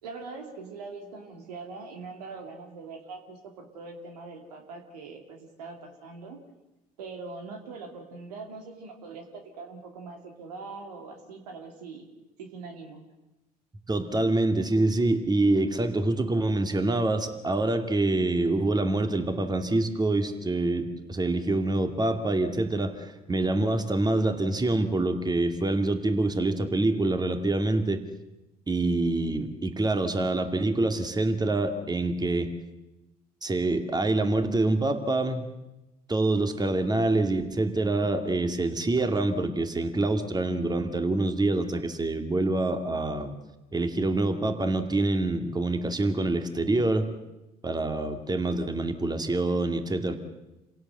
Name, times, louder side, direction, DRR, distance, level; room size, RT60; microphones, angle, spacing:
voice 1, 0.0-6.4 7.0-12.0 12.4-13.0, right 4 dB, 85° right, 3 dB, 2.7 m, -42 dB
voice 2, 13.9-28.0 28.7-32.5 33.4-35.5 36.1-43.3 43.7-47.1 47.6-50.1, right 2 dB, 20° right, 7 dB, 2.4 m, -26 dB
27.5 x 17.5 x 7.9 m, 0.97 s
hypercardioid pair, 55°, 20 cm